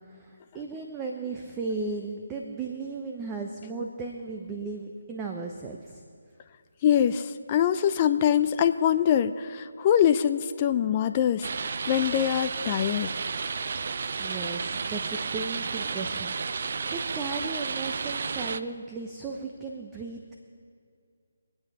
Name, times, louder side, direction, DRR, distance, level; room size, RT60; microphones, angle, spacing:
voice 1, 0.1-6.0 14.2-20.3, right 4 dB, 15° right, 1 dB, 0.9 m, -36 dB
voice 2, 6.8-13.1, left 9 dB, 30° left, 9 dB, 0.4 m, -24 dB
sound 1, 11.4-18.6, right 5 dB, 50° right, 0.5 m, -32 dB
25.0 x 8.8 x 5.0 m, 2.3 s
figure-of-eight pair, 150°, 0 cm